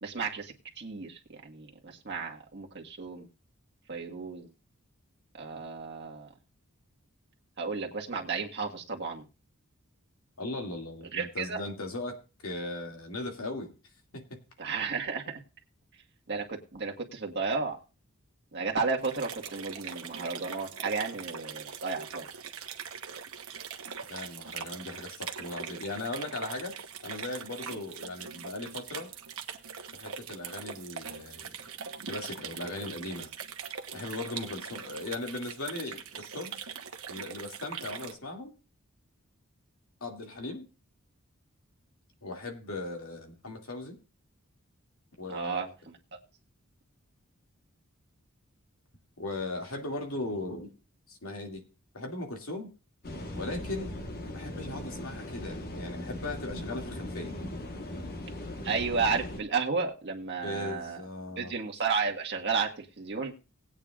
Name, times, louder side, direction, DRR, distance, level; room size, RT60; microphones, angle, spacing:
voice 1, 0.0-3.3 3.9-4.5 5.3-6.3 7.6-9.2 11.1-11.6 14.6-15.2 16.3-17.8 18.5-22.2 45.3-45.7 58.6-61.0 61.4-63.4, right 4 dB, 50° right, 1 dB, 1.7 m, -33 dB
voice 2, 10.4-12.2 12.4-13.7 14.1-14.4 24.1-26.8 27.0-29.1 29.9-31.6 32.1-33.3 33.9-36.6 37.1-38.5 40.0-40.7 42.2-44.0 45.2-45.7 49.2-50.7 51.1-51.6 51.9-52.7 53.4-53.9 54.3-57.3 60.4-61.5, left 2 dB, 75° left, 2 dB, 2.4 m, -38 dB
sound 1, 19.0-38.1, right 7 dB, 80° right, 1.1 m, -42 dB
sound 2, 53.0-59.4, left 1 dB, 45° left, 1.3 m, -39 dB
19.0 x 8.8 x 2.5 m, 0.32 s
head